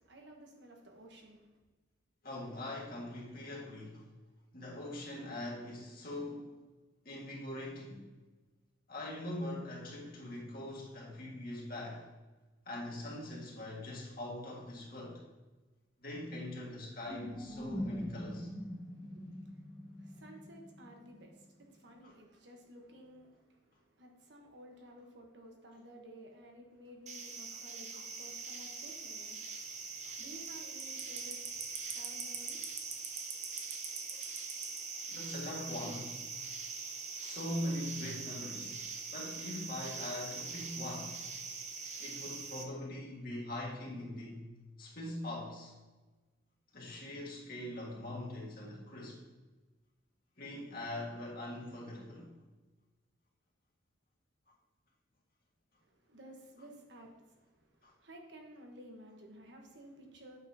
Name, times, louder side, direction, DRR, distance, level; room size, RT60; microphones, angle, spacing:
voice 1, 0.0-1.6 18.0-18.2 18.8-32.6 55.8-60.4, right 1 dB, 65° right, 1 dB, 1.3 m, -55 dB
voice 2, 2.2-4.1 4.5-6.5 7.0-8.1 8.9-12.1 12.7-15.2 16.0-18.5 27.9-28.0 35.1-36.4 37.2-41.3 42.0-45.7 46.7-49.2 50.4-52.3 57.8-57.9, left 1 dB, 50° left, -3 dB, 1.9 m, -42 dB
sound 1, 17.0-21.6, equal, 5° left, 1.2 m, -43 dB
sound 2, 27.1-42.6, right 5 dB, 35° right, 0.8 m, -42 dB
8.7 x 6.7 x 2.9 m, 1.2 s
head